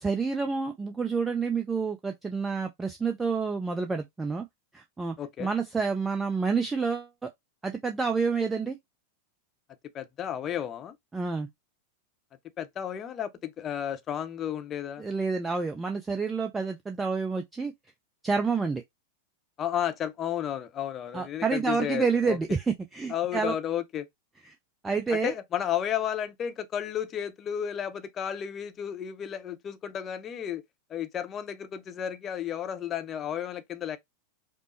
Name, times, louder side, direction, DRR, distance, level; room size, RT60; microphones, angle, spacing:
voice 1, 0.0-4.5 4.7-7.3 7.6-8.8 11.1-11.5 15.0-17.7 18.2-18.8 21.1-23.5 24.8-25.3, right 4 dB, 10° right, 0.5 m, -28 dB
voice 2, 5.2-5.5 9.9-10.9 12.6-15.0 19.6-22.4 23.1-24.1 25.1-30.6 30.9-34.0, left 9 dB, 25° left, 0.6 m, -32 dB
5.2 x 2.0 x 3.0 m
figure-of-eight pair, 90°, 0 cm